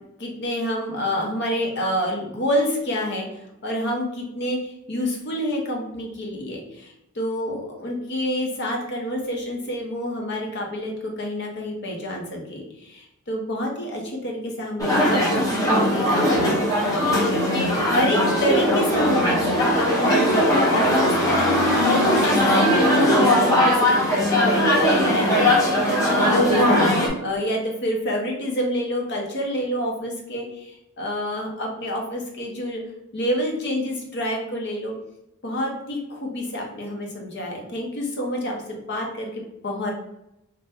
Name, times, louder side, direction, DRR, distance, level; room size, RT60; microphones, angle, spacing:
voice 1, 0.2-3.3 3.6-17.5 17.9-26.8 27.2-32.8 33.1-34.9 35.4-39.9, equal, 50° left, 0 dB, 0.8 m, -28 dB
sound 1, 14.8-27.1, left 1 dB, 15° left, 0.8 m, -19 dB
2.7 x 2.2 x 3.4 m, 0.85 s
head